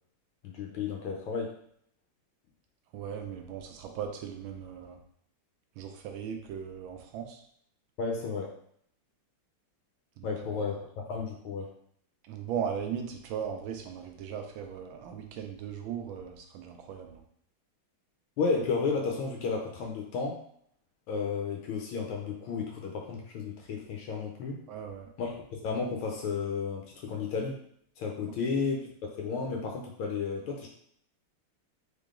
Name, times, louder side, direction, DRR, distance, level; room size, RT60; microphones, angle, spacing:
voice 1, 0.4-1.5 8.0-8.5 10.2-10.8 11.1-11.7 18.4-20.4 21.1-24.6 25.2-27.6 28.0-28.9 29.2-30.7, left 5 dB, 75° left, 0 dB, 1.5 m, -32 dB
voice 2, 2.9-5.0 5.8-7.4 10.2-10.3 10.5-10.6 12.2-17.2 24.7-25.1, right 8 dB, 75° right, 4 dB, 1.2 m, -38 dB
3.8 x 3.7 x 3.7 m, 0.67 s
omnidirectional pair, 2.4 m